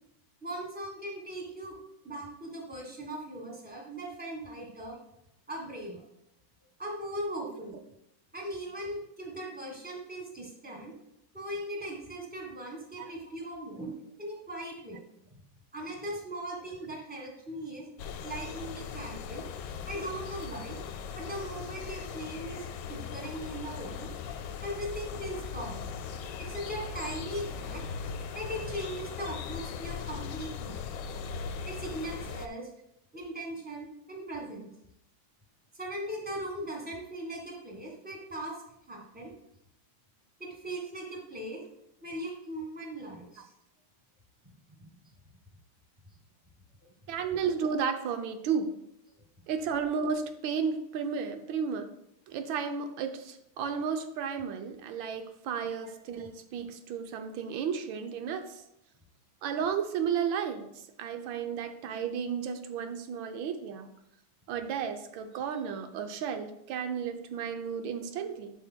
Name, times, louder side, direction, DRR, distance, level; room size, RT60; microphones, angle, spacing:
voice 1, 0.4-1.8 2.0-5.0 5.5-6.0 6.8-7.8 8.3-10.9 11.3-15.0 15.3-15.4 15.7-17.8 18.2-19.5 19.9-20.8 21.1-24.1 24.6-25.9 26.4-27.9 28.3-30.7 31.6-32.7 33.1-34.7 35.8-38.5 38.9-39.3 40.4-41.6 42.0-43.5 44.7-44.9 55.8-55.9 56.2-56.3, right 1 dB, 5° right, -1 dB, 1.3 m, -39 dB
sound 1, 18.0-32.5, left 6 dB, 75° left, 1.2 m, -39 dB
voice 2, 47.1-48.7 49.5-51.9 52.3-58.6 59.4-63.9 64.5-68.5, right 6 dB, 85° right, 7 dB, 1.4 m, -33 dB
11.0 x 5.5 x 2.2 m, 0.79 s
omnidirectional pair, 2.1 m